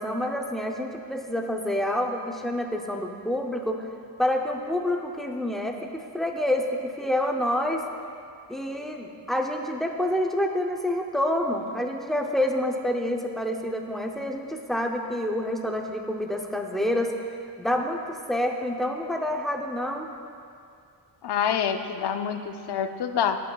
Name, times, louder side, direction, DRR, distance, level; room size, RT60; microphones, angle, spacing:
voice 1, 0.0-3.9 4.2-7.8 8.5-17.1 17.6-20.1, left 1 dB, ahead, 2 dB, 0.5 m, -28 dB
voice 2, 21.2-23.4, left 8 dB, 65° left, 8 dB, 0.5 m, -27 dB
16.5 x 5.9 x 2.3 m, 2.4 s
wide cardioid pair, 135°, 43 cm